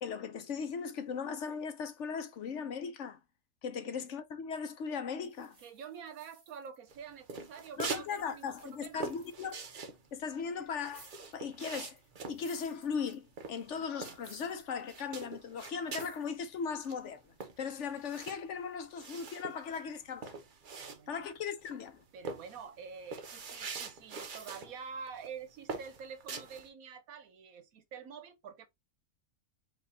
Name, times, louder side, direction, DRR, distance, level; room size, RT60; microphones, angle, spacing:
voice 1, 0.0-3.2 3.6-5.6 7.8-9.6 10.1-12.0 12.3-17.2 17.6-20.3 21.1-22.0, left 6 dB, 65° left, 0.9 m, -38 dB
sound 1, 5.2-7.1 7.5-9.7 10.8-11.4 12.0-13.4 14.1-14.7 15.0-15.1 15.9-16.4, right 2 dB, 25° right, 1.6 m, -59 dB
voice 2, 5.6-9.1 20.8-21.2 22.1-28.7, right 6 dB, 75° right, 1.3 m, -47 dB
sound 2, 6.9-8.1 8.4-14.5 14.8-16.2 16.6-16.7 16.8-21.3 21.6-21.9 22.2-24.7 25.1-25.3 25.7-26.7, right 4 dB, 45° right, 0.8 m, -43 dB
4.7 x 2.7 x 3.9 m
omnidirectional pair, 1.5 m